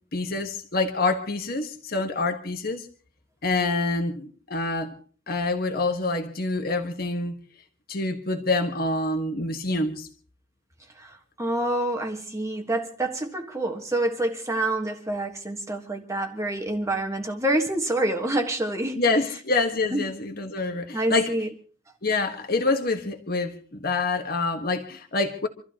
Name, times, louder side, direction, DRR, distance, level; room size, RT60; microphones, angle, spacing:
voice 1, 0.1-2.9 3.4-4.9 5.3-7.4 7.9-10.1 19.0-21.3 22.0-25.5, left 3 dB, 50° left, 4 dB, 1.5 m, -26 dB
voice 2, 11.0-19.0 19.9-20.1 20.9-21.5, right 1 dB, 15° right, 3 dB, 1.4 m, -27 dB
27.5 x 13.5 x 2.9 m, 0.42 s
head